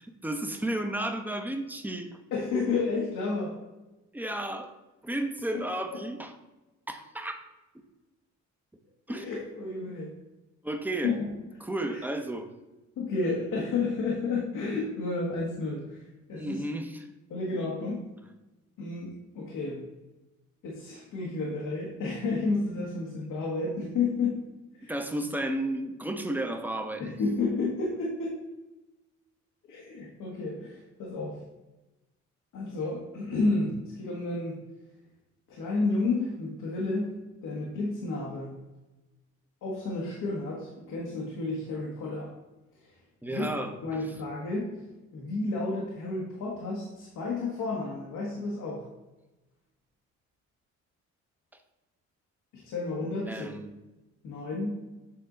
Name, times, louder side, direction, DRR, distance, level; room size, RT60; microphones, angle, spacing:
voice 1, 0.0-2.2 4.1-4.7 5.0-6.3 6.9-7.4 9.1-9.2 10.6-11.1 11.6-12.5 16.4-17.1 24.9-27.1 43.2-44.0 53.3-53.7, right 1 dB, 5° right, 5 dB, 0.8 m, -33 dB
voice 2, 2.3-3.6 9.1-10.1 11.0-11.3 11.9-12.0 13.0-16.0 16.3-16.6 17.3-18.1 18.8-19.8 20.6-24.3 24.8-24.9 27.0-28.4 29.7-31.4 32.5-34.6 35.5-37.2 37.4-38.5 39.6-42.3 42.8-42.9 43.3-44.7 45.1-48.8 52.6-53.5 54.2-54.7, left 3 dB, 85° left, -3 dB, 1.4 m, -31 dB
7.8 x 3.7 x 3.8 m, 1.1 s
cardioid pair, 90°, 30 cm